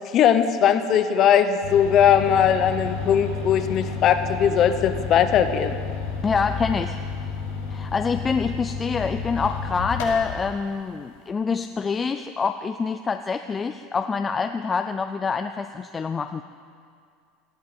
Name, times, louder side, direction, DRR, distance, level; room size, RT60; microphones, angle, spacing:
voice 1, 0.1-5.8, left 8 dB, 35° left, 9 dB, 0.9 m, -19 dB
sound 1, 1.6-10.5, left 5 dB, 90° left, 5.5 m, -31 dB
voice 2, 6.2-7.0 7.7-16.4, left 5 dB, 15° left, 8 dB, 0.4 m, -26 dB
18.5 x 14.0 x 5.2 m, 2.2 s
supercardioid pair, 165°, 0 cm